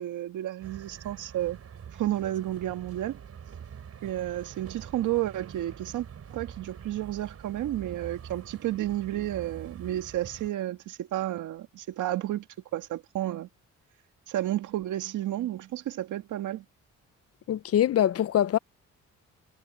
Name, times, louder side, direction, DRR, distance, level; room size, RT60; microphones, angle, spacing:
voice 1, 0.0-1.6 1.9-3.2 4.0-12.5 12.7-13.5 14.3-16.6, right 13 dB, 80° right, 2.0 m, -31 dB
sound 1, 0.6-10.5, right 8 dB, 55° right, 4.8 m, -45 dB
voice 2, 17.5-18.6, left 11 dB, 50° left, 0.6 m, -23 dB
cardioid pair, 90°, 30 cm